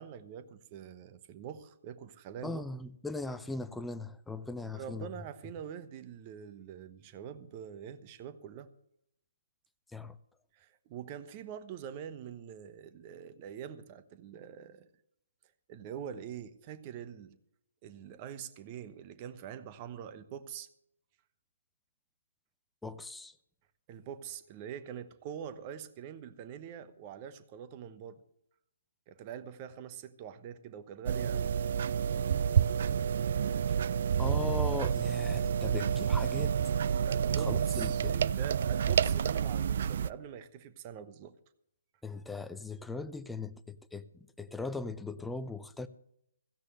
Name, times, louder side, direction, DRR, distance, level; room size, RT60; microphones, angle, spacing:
voice 1, 0.0-2.6 4.6-8.7 10.5-14.9 15.7-17.4 17.8-20.7 23.9-28.2 29.1-31.5 37.0-41.3, right 9 dB, 25° right, 1.1 m, -44 dB
voice 2, 2.4-5.1 9.9-10.2 22.8-23.3 34.2-36.5 37.3-38.2 42.0-45.9, left 3 dB, 5° left, 0.6 m, -39 dB
sound 1, 31.1-40.1, right 8 dB, 45° right, 0.4 m, -29 dB
16.5 x 15.0 x 3.1 m
figure-of-eight pair, 135°, 0 cm